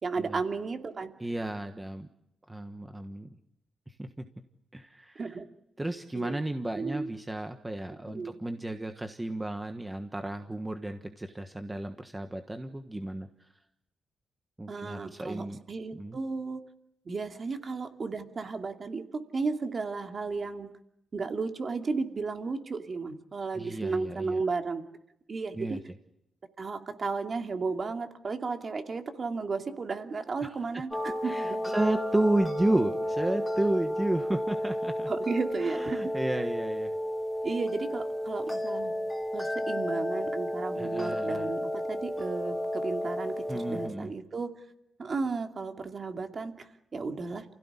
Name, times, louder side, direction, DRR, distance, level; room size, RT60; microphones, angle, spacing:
voice 1, 0.0-1.1 5.2-5.4 6.1-6.4 6.7-7.1 8.0-8.4 14.7-16.6 17.1-20.7 21.1-24.8 25.3-25.8 26.6-31.8 35.1-36.0 37.4-38.9 39.3-44.5 45.0-47.5, right 4 dB, 35° right, 6 dB, 2.5 m, -34 dB
voice 2, 1.2-2.1 2.5-3.4 3.9-4.3 4.7-5.3 5.8-13.5 14.6-15.6 15.9-16.2 23.5-24.4 25.5-25.8 30.4-30.5 31.2-35.1 35.6-37.0 40.7-41.5 43.5-44.1, right 1 dB, 10° right, 7 dB, 1.3 m, -32 dB
sound 1, 30.9-43.9, equal, 5° left, 3.0 m, -32 dB
29.0 x 16.5 x 9.9 m, 0.81 s
wide cardioid pair, 145°, 0 cm